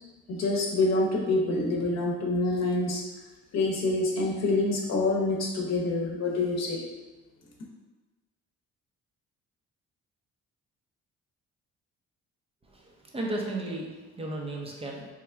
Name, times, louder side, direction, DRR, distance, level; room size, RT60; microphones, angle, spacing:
voice 1, 0.3-3.0 3.5-6.8, left 2 dB, 60° left, -1 dB, 0.8 m, -26 dB
voice 2, 12.7-13.9 14.1-15.1, right 2 dB, 20° right, -1 dB, 0.6 m, -34 dB
3.1 x 2.2 x 3.4 m, 1.2 s
cardioid pair, 90°, 30 cm